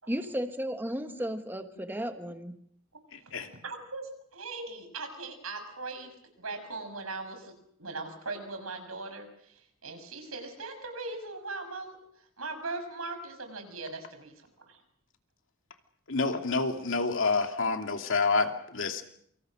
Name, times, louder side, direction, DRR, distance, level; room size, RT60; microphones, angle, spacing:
voice 1, 0.1-2.6, equal, 10° right, 7 dB, 1.4 m, -34 dB
voice 2, 3.1-3.5 16.1-19.0, left 4 dB, 65° left, 5 dB, 2.7 m, -28 dB
voice 3, 3.6-6.1 6.4-7.5 7.8-12.0 12.4-14.3 14.7-14.8, right 3 dB, 80° right, 6 dB, 6.4 m, -39 dB
28.0 x 26.0 x 6.4 m, 0.69 s
head